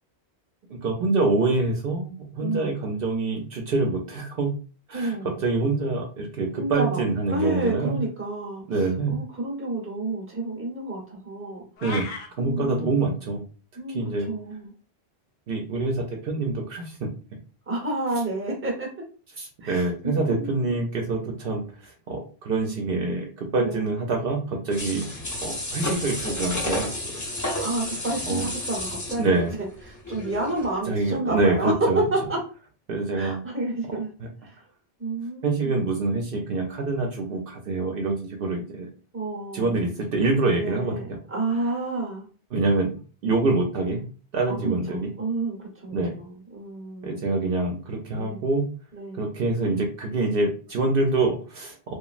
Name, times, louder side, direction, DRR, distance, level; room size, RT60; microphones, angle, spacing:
voice 1, 0.8-4.5 4.9-8.0 8.7-9.1 11.8-12.1 12.4-13.4 13.9-14.3 15.5-17.1 19.4-25.1 25.4-27.2 28.3-28.4 29.2-29.5 30.9-32.0 32.9-33.4 35.4-38.9 39.5-40.9 42.5-42.9 43.2-44.0 44.3-45.1 45.9-46.1 47.0-48.7 49.2-51.9, right 3 dB, 65° right, 2 dB, 0.8 m, -25 dB
voice 2, 2.4-2.7 4.9-5.4 6.6-7.0 7.3-11.7 12.4-13.1 13.8-14.7 17.7-18.9 19.6-20.8 23.6-24.0 27.6-32.4 33.1-34.1 34.4-34.6 35.0-35.7 39.1-39.8 40.5-42.2 44.5-47.2 48.1-48.4 48.9-49.2, right 2 dB, 15° right, -1 dB, 0.8 m, -30 dB
sound 1, 11.8-12.3, left 3 dB, 70° left, 0.8 m, -33 dB
sound 2, 24.7-30.7 31.1-31.2, left 1 dB, 20° left, 0.6 m, -31 dB
3.0 x 2.3 x 2.4 m, 0.36 s
omnidirectional pair, 1.1 m